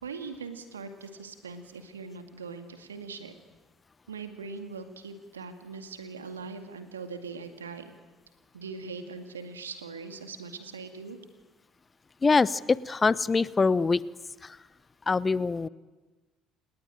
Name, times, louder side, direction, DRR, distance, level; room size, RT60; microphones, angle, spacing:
voice 1, 0.0-3.3 4.1-7.9 8.5-11.2, right 4 dB, 85° right, 7 dB, 2.2 m, -41 dB
voice 2, 12.2-14.0 15.1-15.7, left 4 dB, 25° left, 19 dB, 0.9 m, -24 dB
29.0 x 19.0 x 9.2 m, 1.2 s
figure-of-eight pair, 55°, 0 cm